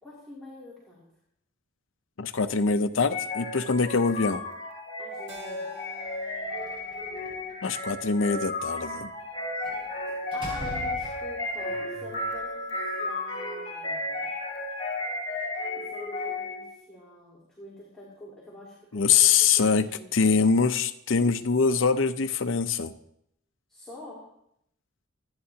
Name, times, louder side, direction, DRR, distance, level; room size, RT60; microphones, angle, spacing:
voice 1, 0.0-1.0 5.0-5.7 10.3-14.3 15.7-20.1 23.7-24.3, left 1 dB, 5° left, -8 dB, 2.8 m, -46 dB
voice 2, 2.2-4.4 7.6-9.1 18.9-19.8 20.1-22.9, left 5 dB, 75° left, 9 dB, 0.7 m, -23 dB
sound 1, 3.1-16.8, left 2 dB, 30° left, 5.0 m, -33 dB
Keyboard (musical), 5.3-9.7, right 2 dB, 60° right, 1.7 m, -51 dB
Slam, 6.5-7.5 9.6-9.9 10.3-11.5, equal, 25° right, 5.7 m, -40 dB
25.5 x 9.7 x 2.8 m, 0.74 s
head